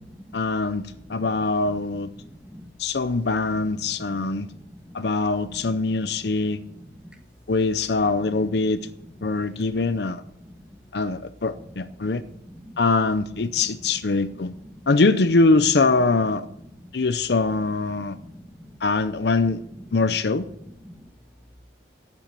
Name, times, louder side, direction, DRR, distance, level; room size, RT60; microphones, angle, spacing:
voice 1, 0.3-2.1 2.8-4.5 4.9-6.6 7.5-8.8 9.2-10.2 10.9-12.2 12.8-14.5 14.9-16.5 16.9-18.2 18.8-19.6 19.9-20.5, left 3 dB, 65° left, 12 dB, 0.6 m, -23 dB
voice 2, 12.0-12.8 14.6-14.7 18.0-18.7 20.8-20.9, equal, 5° right, 4 dB, 1.4 m, -45 dB
12.5 x 8.5 x 7.3 m, 0.77 s
head